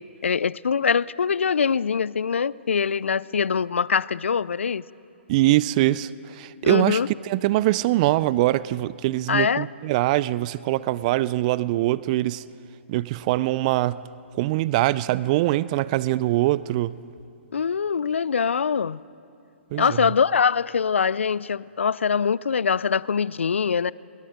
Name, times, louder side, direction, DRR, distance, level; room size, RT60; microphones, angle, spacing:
voice 1, 0.2-4.8 6.6-7.1 9.3-9.7 17.5-19.0 19.7-23.9, left 6 dB, 75° left, 0.4 m, -23 dB
voice 2, 5.3-12.4 12.9-14.0 14.4-17.0 19.7-19.8, right 16 dB, 35° right, 0.4 m, -23 dB
28.5 x 21.0 x 5.0 m
figure-of-eight pair, 125°, 7 cm